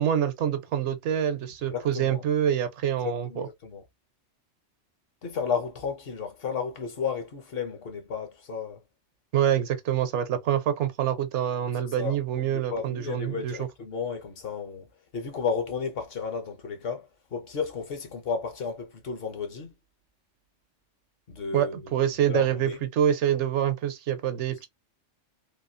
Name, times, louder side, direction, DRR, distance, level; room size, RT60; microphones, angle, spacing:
voice 1, 0.0-3.5 9.3-13.6 21.5-24.7, right 10 dB, 75° right, 0.9 m, -26 dB
voice 2, 1.6-2.2 3.0-3.8 5.2-8.8 12.0-19.7 21.3-22.8, left 6 dB, 55° left, 0.9 m, -33 dB
3.0 x 2.3 x 2.5 m
omnidirectional pair, 1.2 m